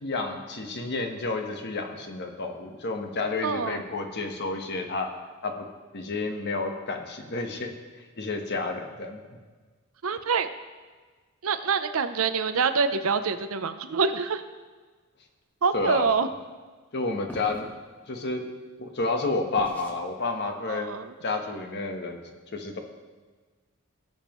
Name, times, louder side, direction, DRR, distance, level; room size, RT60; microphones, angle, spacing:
voice 1, 0.0-5.1 5.4-5.6 5.9-7.7 8.2-9.2 15.7-16.1 16.9-17.7 18.1-18.5 18.8-20.9 21.2-22.2 22.5-22.8, left 3 dB, 50° left, 4 dB, 1.1 m, -30 dB
voice 2, 3.4-3.8 10.0-10.5 11.4-14.4 15.6-16.3 20.7-21.1, right 5 dB, 70° right, 10 dB, 0.6 m, -25 dB
sound 1, 17.3-17.7 19.6-20.0, equal, 10° left, 1.1 m, -42 dB
18.0 x 7.1 x 3.1 m, 1.4 s
head